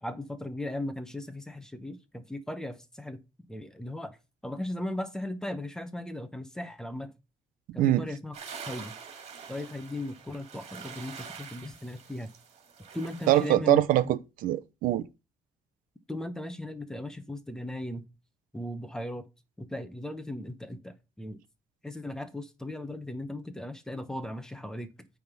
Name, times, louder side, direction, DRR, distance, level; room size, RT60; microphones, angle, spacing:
voice 1, 0.0-3.2 3.5-4.2 4.4-7.1 7.7-8.4 8.7-9.0 9.5-12.3 12.9-13.8 16.1-18.1 18.5-19.3 19.6-21.4 21.8-25.1, left 1 dB, 5° left, 0.9 m, -37 dB
sound 1, 8.3-13.5, right 6 dB, 50° right, 2.4 m, -45 dB
voice 2, 13.3-15.0, right 14 dB, 85° right, 0.7 m, -23 dB
9.3 x 3.6 x 6.1 m
cardioid pair, 155°, 14 cm